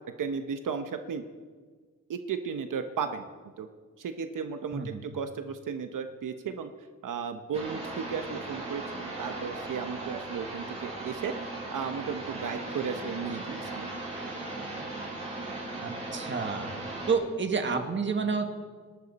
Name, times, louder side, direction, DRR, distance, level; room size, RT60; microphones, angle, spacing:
voice 1, 0.2-1.2 2.1-3.3 3.6-3.7 4.0-6.7 7.0-11.3 11.7-13.9, right 6 dB, 80° right, 7 dB, 1.0 m, -35 dB
sound 1, 7.5-17.1, right 2 dB, 20° right, 6.1 m, -38 dB
voice 2, 15.8-16.7 17.1-18.5, right 5 dB, 35° right, 5 dB, 1.6 m, -29 dB
27.0 x 12.0 x 4.2 m, 1.5 s
wide cardioid pair, 140°, 31 cm